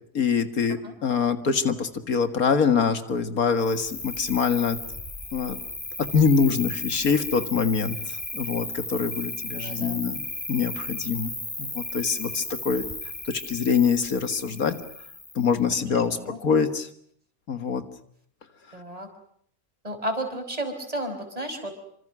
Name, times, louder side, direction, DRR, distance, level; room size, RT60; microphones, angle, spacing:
voice 1, 0.1-4.8 5.3-5.6 6.0-10.2 10.5-11.3 11.6-12.9 13.3-14.7 15.4-16.9 17.5-17.8, left 6 dB, 90° left, 9 dB, 2.3 m, -24 dB
Cricket, 3.6-15.5, left 2 dB, 25° left, 2.5 m, -35 dB
voice 2, 9.5-10.0 15.9-16.4 18.7-19.1 19.8-21.7, right 1 dB, 25° right, 5 dB, 5.3 m, -33 dB
28.0 x 26.0 x 6.3 m, 0.65 s
omnidirectional pair, 1.5 m